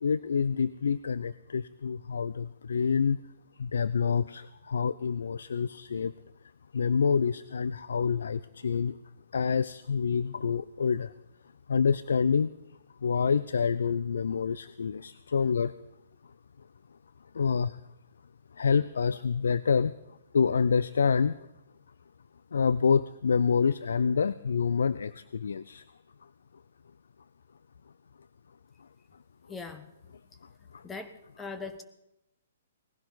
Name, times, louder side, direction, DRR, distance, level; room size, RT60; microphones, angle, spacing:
voice 1, 0.0-3.2 3.6-6.1 6.7-8.9 9.3-11.1 11.7-12.5 13.0-15.7 17.4-17.7 18.6-19.9 20.3-21.4 22.5-25.8, left 6 dB, 70° left, 16 dB, 0.4 m, -27 dB
voice 2, 29.5-29.9 30.8-31.1 31.4-31.8, left 4 dB, 10° left, 8 dB, 1.2 m, -39 dB
19.5 x 15.5 x 4.0 m, 0.89 s
figure-of-eight pair, 125°, 0 cm